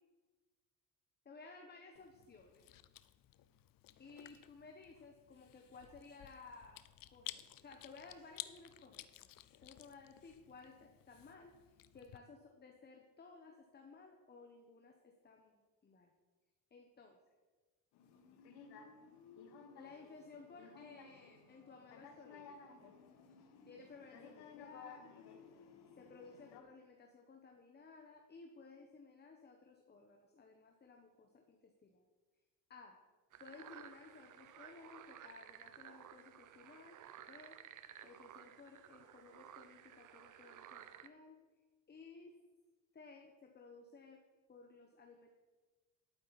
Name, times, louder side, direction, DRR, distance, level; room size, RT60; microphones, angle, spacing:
voice 1, 1.2-2.6 4.0-6.8 7.1-9.3 9.6-16.1 16.7-17.2 19.7-22.7 23.6-25.1 26.0-32.0 32.7-33.0 33.4-37.6 38.0-41.4 41.9-42.3 42.9-44.2 44.5-45.3, left 4 dB, 25° left, 3 dB, 1.2 m, -57 dB
Chewing mastication, 2.0-12.2, left 14 dB, 60° left, 0.6 m, -55 dB
sound 1, 17.9-26.6, left 5 dB, 80° left, 1.4 m, -57 dB
sound 2, 33.3-41.1, right 10 dB, 50° right, 0.7 m, -56 dB
11.5 x 8.8 x 4.2 m, 1.3 s
cardioid pair, 105°, 39 cm